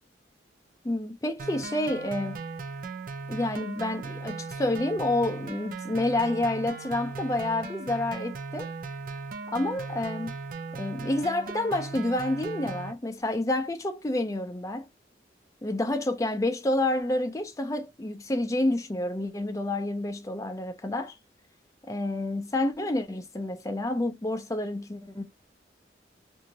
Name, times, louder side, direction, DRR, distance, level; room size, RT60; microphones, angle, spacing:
voice 1, 0.8-2.4 3.3-8.7 9.5-10.3 10.7-14.8 15.6-21.2 21.9-25.2, left 1 dB, 20° left, 0.5 m, -29 dB
sound 1, 1.4-12.9, right 4 dB, 50° right, 0.4 m, -38 dB
2.6 x 2.5 x 2.9 m
head